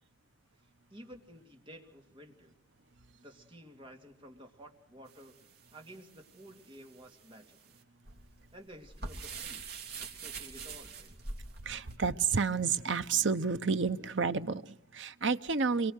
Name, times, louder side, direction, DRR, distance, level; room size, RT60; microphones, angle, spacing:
voice 1, 0.9-2.5 3.2-5.4 5.7-7.8 8.5-11.2, equal, 30° right, 3 dB, 2.7 m, -53 dB
sound 1, 5.1-12.0, right 4 dB, 60° right, 3.4 m, -45 dB
voice 2, 11.6-15.9, right 5 dB, 85° right, 11 dB, 0.9 m, -30 dB
27.5 x 22.5 x 6.5 m, 0.77 s
head